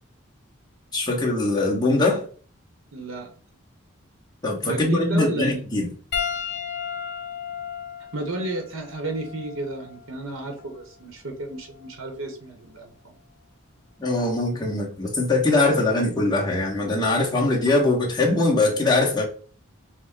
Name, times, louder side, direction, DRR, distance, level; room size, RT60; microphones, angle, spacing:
voice 1, 0.9-2.2 4.4-5.9 14.0-19.2, left 2 dB, 20° left, 1.1 m, -22 dB
voice 2, 2.9-3.3 4.6-5.6 8.1-13.1, right 2 dB, 75° right, 0.9 m, -32 dB
Piano, 6.1-10.8 11.7-11.9 13.8-13.9, left 7 dB, 50° left, 0.7 m, -34 dB
6.2 x 2.1 x 3.6 m
head